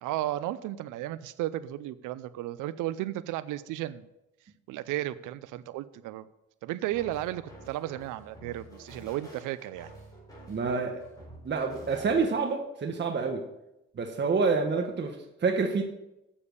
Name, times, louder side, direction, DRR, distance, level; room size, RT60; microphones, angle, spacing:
voice 1, 0.0-4.1 4.7-6.3 6.6-9.9, right 14 dB, 90° right, 15 dB, 0.5 m, -34 dB
sound 1, 6.9-12.5, right 1 dB, 10° left, 4.2 m, -49 dB
voice 2, 10.5-11.0 11.4-13.4 14.0-15.2 15.4-15.8, right 4 dB, 35° right, 3 dB, 1.1 m, -27 dB
7.1 x 6.9 x 6.5 m, 0.90 s
cardioid pair, 90°, 30 cm